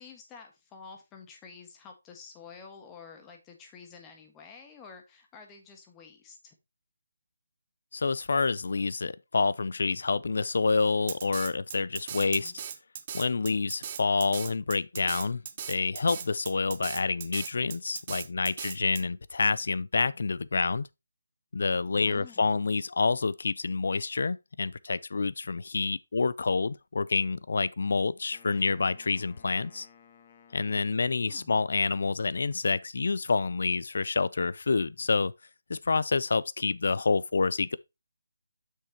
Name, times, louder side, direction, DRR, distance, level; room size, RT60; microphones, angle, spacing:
voice 1, 0.0-6.6 12.4-12.6 21.9-22.5 31.3-31.5, left 5 dB, 15° left, 1.5 m, -49 dB
voice 2, 7.9-12.5 13.1-15.4 15.7-20.9 21.5-29.9 30.5-35.3 35.7-37.8, left 4 dB, 65° left, 0.5 m, -28 dB
Drum kit, 11.1-19.0, right 8 dB, 30° right, 0.7 m, -38 dB
Wind instrument woodwind instrument, 28.3-31.8, left 8 dB, 30° left, 1.0 m, -58 dB
7.8 x 6.4 x 2.9 m
figure-of-eight pair, 160°, 0 cm